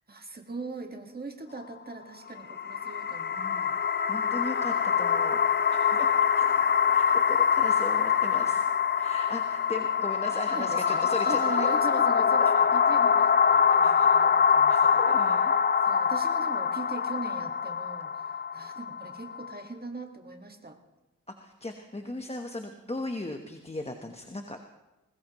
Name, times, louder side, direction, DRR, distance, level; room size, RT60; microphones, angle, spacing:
voice 1, 0.1-3.4 10.5-15.4 15.8-20.8, right 3 dB, 30° right, 4 dB, 1.7 m, -40 dB
sound 1, 2.4-19.6, left 7 dB, 35° left, 0.4 m, -24 dB
voice 2, 3.3-3.7 4.1-5.4 5.7-6.1 6.4-6.5 6.9-8.6 9.0-11.7 12.4-12.5 13.8-14.1 14.7-15.5 21.4-24.6, left 2 dB, 20° left, 4 dB, 1.1 m, -37 dB
21.0 x 19.5 x 3.1 m, 1.0 s
wide cardioid pair, 70°, 31 cm